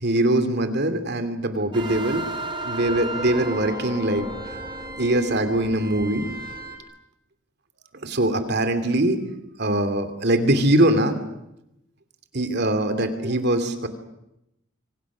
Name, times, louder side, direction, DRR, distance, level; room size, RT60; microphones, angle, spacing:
voice 1, 0.0-2.2 2.6-4.3 5.0-6.3 8.0-9.2 9.6-11.2 12.3-13.9, right 1 dB, 55° right, 8 dB, 2.8 m, -22 dB
sound 1, 1.7-6.8, right 2 dB, 25° right, 3.4 m, -33 dB
26.5 x 25.0 x 6.3 m, 0.86 s
head